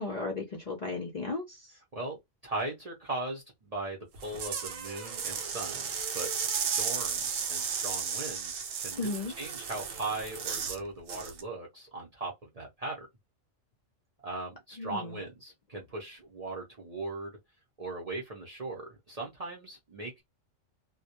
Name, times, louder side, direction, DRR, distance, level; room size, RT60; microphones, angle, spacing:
voice 1, 0.0-1.7 9.0-9.3 14.8-15.2, left 3 dB, 50° left, 0.5 m, -35 dB
voice 2, 1.9-13.1 14.2-17.4 17.8-20.2, right 2 dB, 40° right, 0.6 m, -39 dB
sound 1, 4.1-10.8 11.1-11.4, right 6 dB, 90° right, 1.0 m, -34 dB
2.2 x 2.1 x 2.8 m
omnidirectional pair, 1.3 m